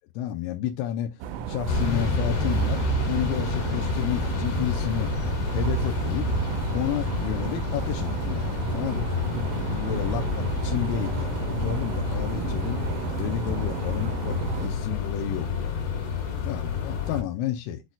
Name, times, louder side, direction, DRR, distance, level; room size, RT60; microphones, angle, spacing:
voice 1, 0.2-1.1 1.5-5.1 5.5-6.3 6.7-12.8 13.2-15.9 16.4-17.8, left 10 dB, 85° left, 3.3 m, -31 dB
sound 1, 1.2-14.7, right 7 dB, 85° right, 3.4 m, -33 dB
sound 2, 1.7-17.2, left 4 dB, 60° left, 4.2 m, -29 dB
10.5 x 4.1 x 2.4 m
omnidirectional pair, 5.9 m